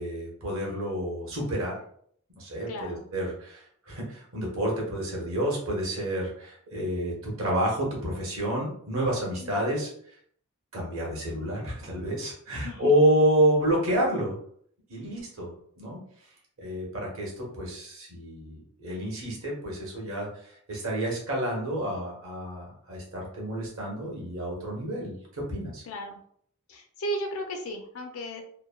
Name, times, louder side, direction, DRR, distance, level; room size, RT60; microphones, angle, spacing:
voice 1, 0.0-1.8 2.4-9.9 10.7-14.4 14.9-16.0 16.6-25.8, right 1 dB, 60° right, -2 dB, 1.0 m, -29 dB
voice 2, 2.7-3.0 9.4-9.7 12.5-12.9 25.9-26.2 26.7-28.4, equal, 65° left, 4 dB, 0.4 m, -35 dB
3.0 x 2.1 x 2.2 m, 0.62 s
head